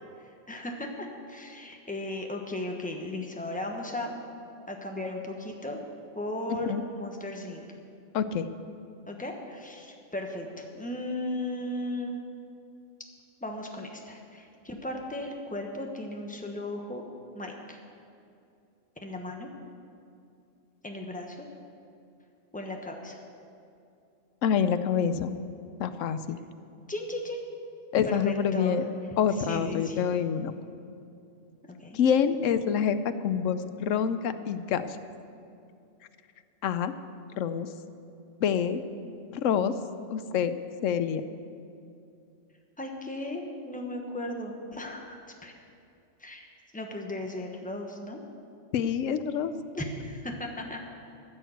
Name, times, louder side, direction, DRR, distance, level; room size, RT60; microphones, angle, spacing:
voice 1, 0.5-4.1 4.7-5.8 6.1-7.6 9.1-12.2 13.4-17.0 17.3-17.8 19.0-19.5 20.8-21.5 22.5-23.2 26.9-27.6 28.0-28.7 29.5-30.0 31.8-32.0 39.0-39.1 42.8-45.5 46.2-46.5 46.7-48.2 49.7-50.8, left 1 dB, 5° left, 2 dB, 1.1 m, -36 dB
voice 2, 8.1-8.5 24.4-25.3 25.8-26.4 27.9-28.8 29.2-30.5 31.9-35.0 36.6-36.9 37.4-37.7 38.4-38.8 39.3-39.7 40.1-41.2 48.7-49.5, left 7 dB, 80° left, 11 dB, 1.0 m, -27 dB
14.0 x 6.5 x 8.0 m, 2.5 s
omnidirectional pair, 1.3 m